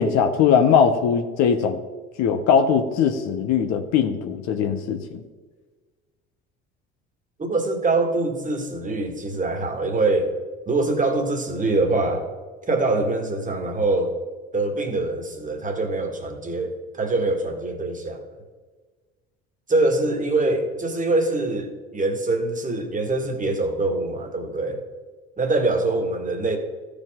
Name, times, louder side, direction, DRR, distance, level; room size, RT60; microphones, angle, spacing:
voice 1, 0.0-1.8 2.2-5.2, left 7 dB, 60° left, 6 dB, 0.9 m, -20 dB
voice 2, 7.4-10.4 10.7-12.3 12.7-14.2 14.5-18.4 19.7-24.8 25.4-26.6, right 2 dB, 25° right, 4 dB, 1.8 m, -24 dB
13.5 x 5.1 x 3.7 m, 1.4 s
hypercardioid pair, 65°, 30 cm